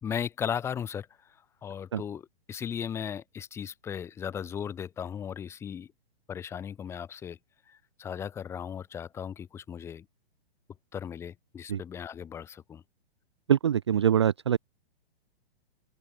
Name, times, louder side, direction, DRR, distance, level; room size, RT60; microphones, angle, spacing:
voice 1, 0.0-1.1 1.6-5.9 6.3-7.4 7.7-10.0 10.9-12.8, left 8 dB, 10° left, 1.6 m, -36 dB
voice 2, 13.5-14.6, right 9 dB, 25° right, 0.4 m, -24 dB
open air
hypercardioid pair, 175°, 32 cm